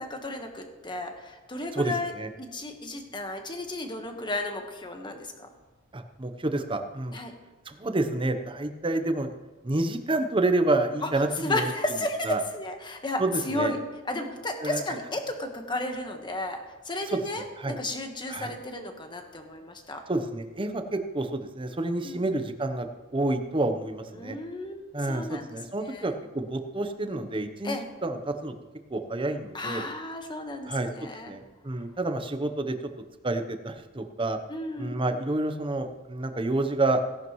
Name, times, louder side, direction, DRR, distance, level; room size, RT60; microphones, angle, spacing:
voice 1, 0.0-2.1 2.4-5.3 7.1-7.3 11.0-11.1 11.4-13.8 14.0-20.0 22.0-22.2 24.1-25.5 25.8-26.1 27.6-27.8 29.5-31.3 34.5-35.0, left 2 dB, 20° left, 4 dB, 1.3 m, -33 dB
voice 2, 1.7-2.3 5.9-7.1 7.7-9.3 9.6-11.7 12.3-12.4 13.2-13.8 14.6-14.8 17.1-17.2 17.6-17.8 18.3-18.5 20.1-22.9 23.1-24.4 24.9-28.5 28.9-29.9 30.7-32.8 33.2-34.4 34.8-37.0, right 2 dB, 25° right, 7 dB, 0.8 m, -29 dB
17.5 x 11.0 x 3.1 m, 1.2 s
head